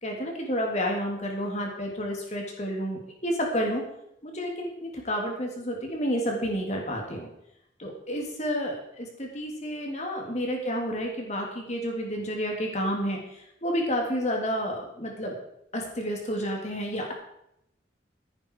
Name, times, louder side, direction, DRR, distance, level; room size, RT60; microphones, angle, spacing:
voice 1, 0.0-3.8 4.2-7.3 7.8-13.2 13.6-15.3 15.7-17.1, equal, 35° left, 0 dB, 3.3 m, -30 dB
15.0 x 10.0 x 4.9 m, 0.78 s
head